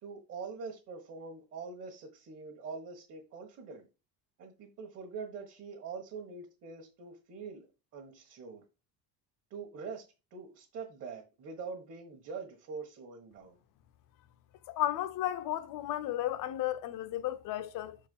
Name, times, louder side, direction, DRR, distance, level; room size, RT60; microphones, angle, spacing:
voice 1, 0.0-3.9 4.4-7.7 7.9-8.6 9.5-10.0 10.3-13.6, right 5 dB, 40° right, 1.6 m, -44 dB
voice 2, 14.7-18.0, left 13 dB, 60° left, 0.8 m, -34 dB
6.4 x 4.6 x 5.5 m
cardioid pair, 165°, 37 cm